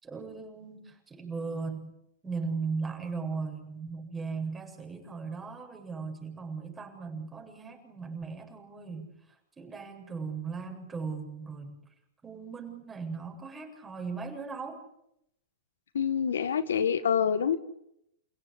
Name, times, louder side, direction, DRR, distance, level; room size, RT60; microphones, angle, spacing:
voice 1, 0.0-1.9 2.2-9.1 9.6-11.8 12.2-14.8, right 4 dB, 15° right, 2 dB, 7.9 m, -37 dB
voice 2, 15.9-17.6, left 7 dB, 90° left, 14 dB, 1.6 m, -26 dB
29.5 x 17.0 x 9.7 m, 0.79 s
hypercardioid pair, 125°, 0 cm